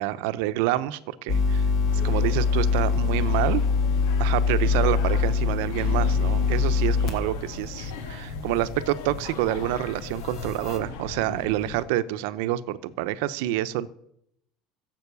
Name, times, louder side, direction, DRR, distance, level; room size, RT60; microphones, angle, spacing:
voice 1, 0.0-1.6 2.0-3.6 4.2-13.9, right 14 dB, 70° right, 13 dB, 0.8 m, -27 dB
sound 1, 1.3-7.2 7.6-7.7 10.4-10.8, left 5 dB, 35° left, 2.1 m, -23 dB
sound 2, 1.9-11.8, left 5 dB, 85° left, 1.9 m, -38 dB
15.5 x 7.7 x 6.9 m, 0.73 s
cardioid pair, 170°, 0 cm